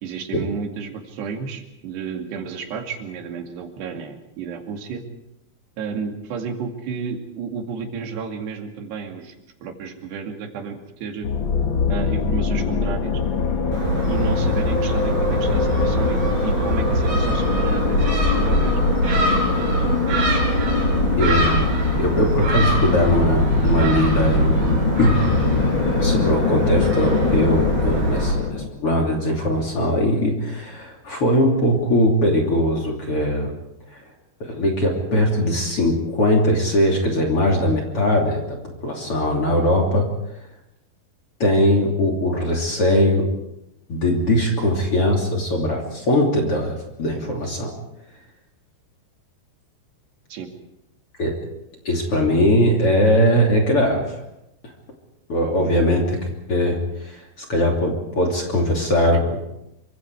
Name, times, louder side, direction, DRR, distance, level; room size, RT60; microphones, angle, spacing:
voice 1, 0.0-5.0 5.8-9.4 9.6-11.3 11.9-13.2 14.1-18.8 50.3-50.5, right 6 dB, 90° right, 3 dB, 4.6 m, -31 dB
sound 1, 11.2-28.7, left 5 dB, 70° left, 1.1 m, -23 dB
Gull seagull, 13.7-28.3, right 2 dB, 45° right, 5.9 m, -23 dB
voice 2, 21.2-21.6 22.0-25.2 26.0-33.5 33.9-34.0 34.4-40.1 41.4-43.3 43.9-47.7 51.2-51.3 51.9-54.2 55.3-59.4, left 1 dB, 35° left, 2 dB, 3.5 m, -20 dB
26.5 x 25.0 x 4.8 m, 0.86 s
omnidirectional pair, 4.7 m